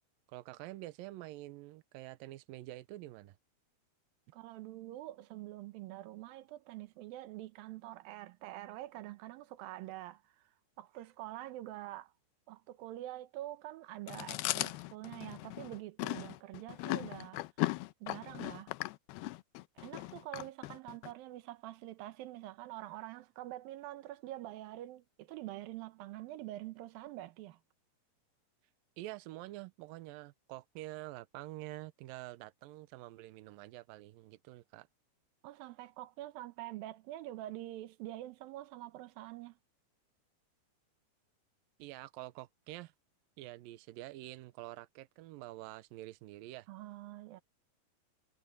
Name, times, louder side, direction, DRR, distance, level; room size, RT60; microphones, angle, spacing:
voice 1, 0.3-3.4 29.0-34.9 41.8-42.9 43.4-46.7, right 17 dB, 90° right, 2.0 m, -47 dB
voice 2, 4.3-10.3 10.8-12.1 12.5-17.4 18.0-18.7 19.8-27.6 35.4-39.6 46.7-47.4, right 15 dB, 75° right, 2.3 m, -46 dB
Chewing mastication, 14.1-21.1, left 19 dB, 80° left, 2.4 m, -38 dB
omnidirectional pair, 5.0 m